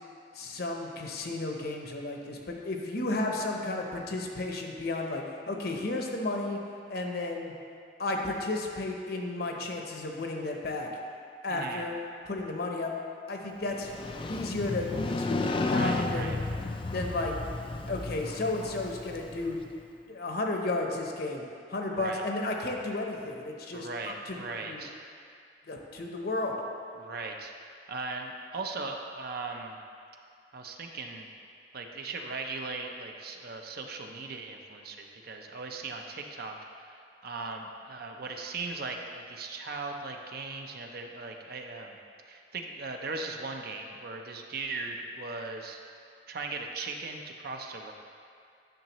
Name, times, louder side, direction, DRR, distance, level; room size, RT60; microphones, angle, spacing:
voice 1, 0.3-6.6 6.9-7.5 8.0-10.9 11.4-12.0 12.3-12.9 13.3-13.9 14.3-14.9 15.2-16.4 16.9-17.4 17.9-19.7 20.1-21.4 21.7-24.8 25.7-26.6, left 2 dB, 60° left, 1 dB, 0.9 m, -33 dB
voice 2, 11.5-11.9 15.6-16.4 21.9-22.2 23.7-24.9 27.0-27.5 27.9-29.8 30.5-31.3 31.7-36.6 36.9-42.0 42.3-45.8 46.3-47.9, right 3 dB, 55° right, 3 dB, 0.6 m, -38 dB
Motorcycle, 13.7-19.6, left 2 dB, 30° left, 0.3 m, -33 dB
10.5 x 6.5 x 3.0 m, 2.4 s
head